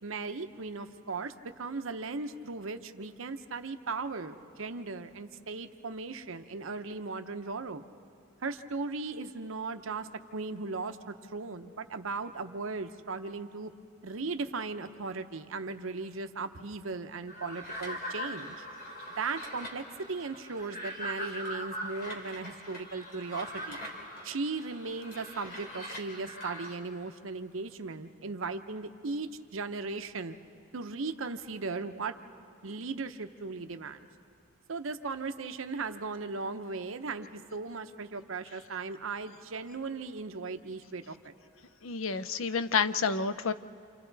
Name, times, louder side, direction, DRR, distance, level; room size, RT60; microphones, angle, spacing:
voice 1, 0.0-7.8 8.4-13.7 14.0-18.6 19.2-23.8 24.2-30.3 30.7-32.1 32.6-34.1 34.7-41.3, right 4 dB, 80° right, 8 dB, 0.8 m, -37 dB
sound 1, 17.3-26.8, equal, 45° left, 2.9 m, -41 dB
voice 2, 41.8-43.5, left 5 dB, 85° left, 12 dB, 0.6 m, -29 dB
28.5 x 27.5 x 4.0 m, 2.4 s
head